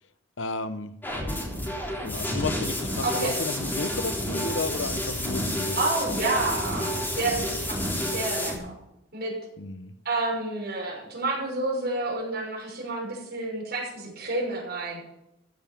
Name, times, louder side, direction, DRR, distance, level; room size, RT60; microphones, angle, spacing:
voice 1, 0.4-0.9 2.0-5.8 9.6-9.9, left 3 dB, 90° left, 12 dB, 0.8 m, -33 dB
sound 1, 1.0-8.6, equal, 10° left, 3.9 m, -30 dB
voice 2, 3.0-3.4 5.7-8.7 9.1-9.3 10.0-15.0, right 2 dB, 60° right, -2 dB, 6.2 m, -29 dB
15.0 x 7.2 x 7.0 m, 0.85 s
head